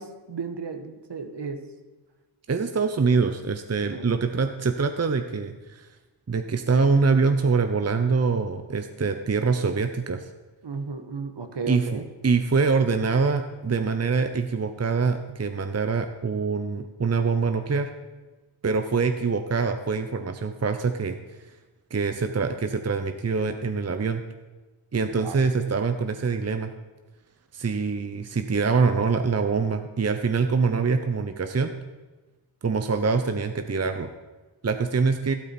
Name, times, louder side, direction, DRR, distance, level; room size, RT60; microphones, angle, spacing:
voice 1, 0.0-1.6 3.9-4.1 10.6-12.1 25.0-25.5, right 4 dB, 55° right, 7 dB, 1.4 m, -35 dB
voice 2, 2.5-5.9 6.3-10.3 11.7-17.9 18.6-21.2 21.9-24.2 24.9-26.7 27.5-31.7 32.6-34.1 34.6-35.3, right 4 dB, 30° right, 7 dB, 0.8 m, -24 dB
12.5 x 12.5 x 4.4 m, 1.2 s
cardioid pair, 55°, 49 cm